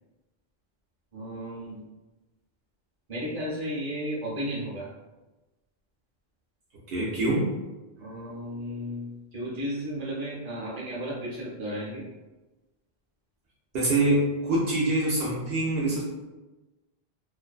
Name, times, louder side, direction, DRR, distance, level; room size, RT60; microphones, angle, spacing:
voice 1, 1.1-1.8 3.1-4.9 8.0-12.1, equal, 40° right, -6 dB, 0.9 m, -34 dB
voice 2, 6.9-7.5 13.7-16.0, right 2 dB, 75° right, -5 dB, 0.8 m, -25 dB
2.5 x 2.2 x 2.3 m, 1.1 s
omnidirectional pair, 1.1 m